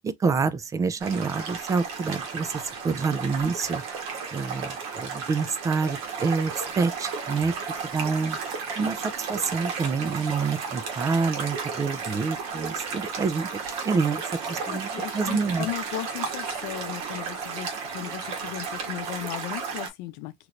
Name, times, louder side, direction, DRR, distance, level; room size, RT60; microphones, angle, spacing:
voice 1, 0.0-3.8 4.3-7.5 7.9-8.4 8.8-14.2 14.5-15.7, right 4 dB, 15° right, 0.3 m, -27 dB
sound 1, 1.0-19.9, right 5 dB, 85° right, 1.3 m, -33 dB
voice 2, 14.5-20.3, left 14 dB, 70° left, 0.7 m, -36 dB
3.1 x 2.9 x 2.4 m
cardioid pair, 145°, 19 cm